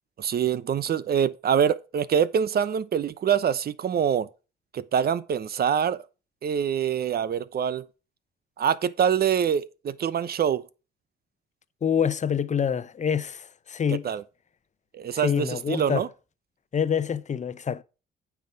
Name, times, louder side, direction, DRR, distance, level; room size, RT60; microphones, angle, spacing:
voice 1, 0.2-4.3 4.7-6.0 6.4-7.9 8.6-10.7 13.9-14.2 14.9-16.1, right 8 dB, 50° right, 0.9 m, -25 dB
voice 2, 11.8-14.1 15.1-16.1 16.7-17.8, left 7 dB, 35° left, 0.9 m, -26 dB
9.2 x 6.0 x 4.7 m
cardioid pair, 90°, 20 cm